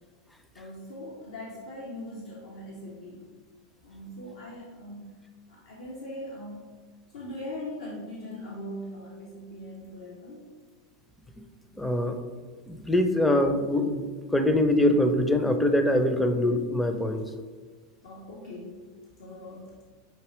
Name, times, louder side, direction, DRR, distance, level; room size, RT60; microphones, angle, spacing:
voice 1, 0.5-3.3 3.8-6.7 7.1-10.5 18.0-19.8, left 1 dB, 75° left, -3 dB, 0.7 m, -41 dB
voice 2, 11.7-12.2 12.7-17.3, left 1 dB, 10° left, 6 dB, 0.5 m, -24 dB
6.0 x 2.8 x 3.1 m, 1.4 s
hypercardioid pair, 90°, 0 cm